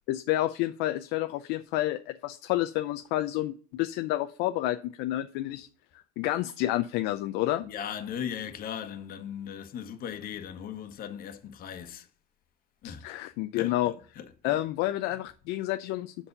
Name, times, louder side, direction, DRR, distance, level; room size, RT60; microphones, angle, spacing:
voice 1, 0.1-5.7 6.2-7.7 12.8-13.9 14.4-16.3, left 15 dB, 65° left, 0.5 m, -29 dB
voice 2, 7.6-12.1 12.8-13.1 13.5-14.6, left 8 dB, 50° left, 1.3 m, -38 dB
7.2 x 5.5 x 6.7 m
supercardioid pair, 105°, 19 cm